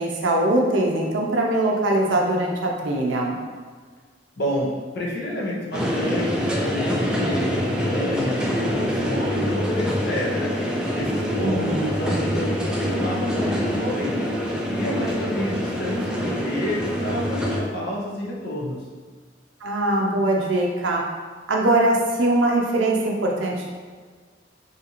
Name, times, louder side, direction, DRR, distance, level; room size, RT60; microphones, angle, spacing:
voice 1, 0.0-3.4 11.4-12.0 19.6-21.0 21.5-23.7, right 1 dB, 90° right, -1 dB, 0.4 m, -22 dB
voice 2, 4.4-14.3 14.7-18.8, left 1 dB, 60° left, -4 dB, 0.7 m, -29 dB
sound 1, 5.7-17.6, equal, 5° right, 0.3 m, -25 dB
2.8 x 2.4 x 2.9 m, 1.5 s
head